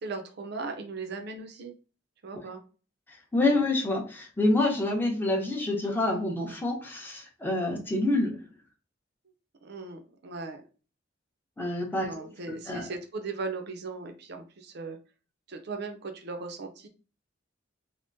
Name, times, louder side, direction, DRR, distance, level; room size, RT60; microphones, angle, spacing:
voice 1, 0.0-1.7 2.2-2.6 3.4-3.6 9.6-10.6 12.0-15.0 15.5-16.9, right 3 dB, 60° right, 5 dB, 0.5 m, -38 dB
voice 2, 3.3-8.4 11.6-12.3 12.7-12.9, left 2 dB, 10° left, 0 dB, 0.7 m, -27 dB
3.5 x 2.1 x 2.6 m, 0.36 s
head